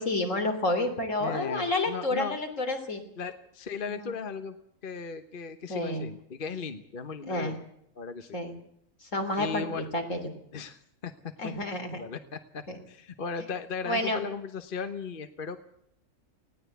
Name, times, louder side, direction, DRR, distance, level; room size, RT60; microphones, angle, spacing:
voice 1, 0.0-3.0 3.9-4.1 5.7-6.1 7.3-7.6 8.3-8.6 9.1-10.2 11.4-12.0 12.7-12.8 13.9-14.2, left 2 dB, 75° left, 5 dB, 3.8 m, -29 dB
voice 2, 1.2-2.4 3.2-4.6 4.8-7.5 8.0-8.4 9.4-9.9 10.5-11.1 11.4-11.5 11.9-15.6, left 5 dB, 45° left, 9 dB, 1.3 m, -37 dB
19.5 x 17.0 x 8.2 m, 0.69 s
omnidirectional pair, 1.3 m